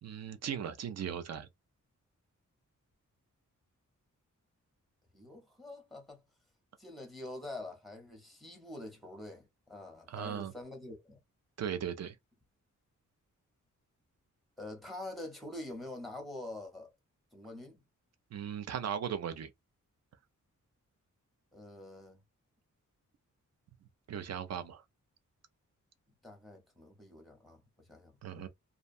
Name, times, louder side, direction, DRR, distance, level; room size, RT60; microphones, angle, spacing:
voice 1, 0.0-1.5 10.1-10.5 11.6-12.2 18.3-19.5 24.1-24.8 28.2-28.5, right 8 dB, 55° right, 0.5 m, -37 dB
voice 2, 5.1-6.2 6.8-11.2 14.6-16.9 17.3-17.8 21.5-22.2 26.2-28.5, left 2 dB, ahead, 0.8 m, -46 dB
2.5 x 2.1 x 2.5 m
wide cardioid pair, 175°, 31 cm